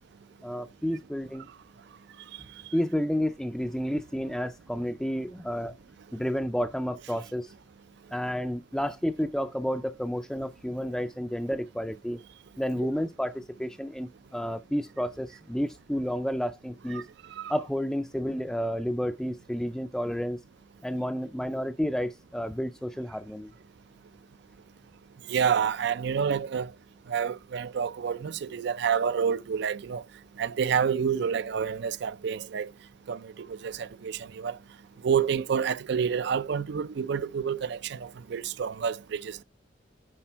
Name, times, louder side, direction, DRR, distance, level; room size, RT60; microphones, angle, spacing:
voice 1, 0.4-1.5 2.7-5.7 6.1-7.5 8.1-12.2 12.6-17.0 17.5-20.4 20.8-23.5, equal, 5° left, 0.4 m, -31 dB
voice 2, 25.3-26.7 27.1-30.0 30.4-32.7 33.1-34.6 35.0-39.4, right 7 dB, 65° right, 0.4 m, -28 dB
10.0 x 4.2 x 4.5 m
head